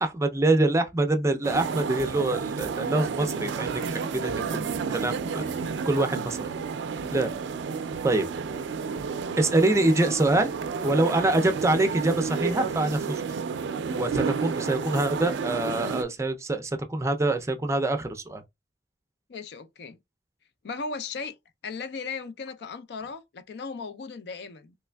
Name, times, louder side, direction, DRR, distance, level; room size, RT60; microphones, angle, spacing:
voice 1, 0.0-4.6 4.9-5.4 5.8-6.4 7.1-7.3 8.0-8.3 9.4-10.5 10.8-13.2 13.9-18.4, right 2 dB, 15° right, 0.4 m, -25 dB
sound 1, 1.4-16.0, right 5 dB, 80° right, 0.3 m, -31 dB
voice 2, 19.3-20.0 20.6-21.3 21.6-24.7, left 4 dB, 65° left, 0.4 m, -37 dB
3.3 x 3.1 x 2.2 m
head